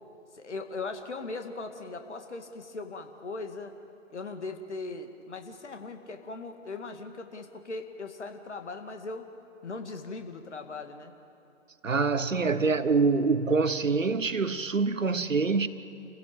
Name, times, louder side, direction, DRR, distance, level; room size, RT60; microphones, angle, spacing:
voice 1, 0.3-3.7 4.1-9.3 9.6-11.1 12.0-12.6, left 3 dB, 60° left, 2.3 m, -39 dB
voice 2, 11.8-15.7, right 4 dB, 75° right, 1.3 m, -25 dB
28.0 x 16.0 x 8.8 m
figure-of-eight pair, 140°, 39 cm